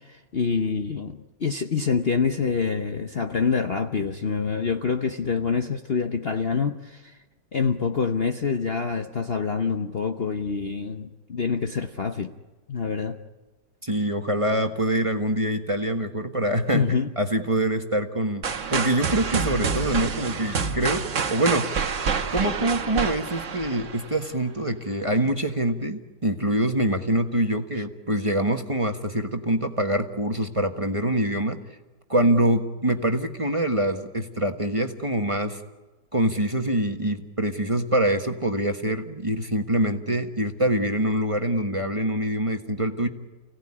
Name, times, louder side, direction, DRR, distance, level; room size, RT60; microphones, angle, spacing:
voice 1, 0.0-7.2 7.5-12.3 12.7-13.2 16.7-17.1 20.5-20.6 27.8-27.9, left 5 dB, 45° left, 6 dB, 1.0 m, -26 dB
voice 2, 13.8-16.8 17.2-21.7 22.3-31.6 32.1-35.6 36.1-43.1, right 1 dB, 20° right, 5 dB, 1.4 m, -25 dB
sound 1, 18.4-24.3, right 5 dB, 50° right, 1.5 m, -28 dB
30.0 x 17.5 x 9.9 m, 1.2 s
omnidirectional pair, 1.8 m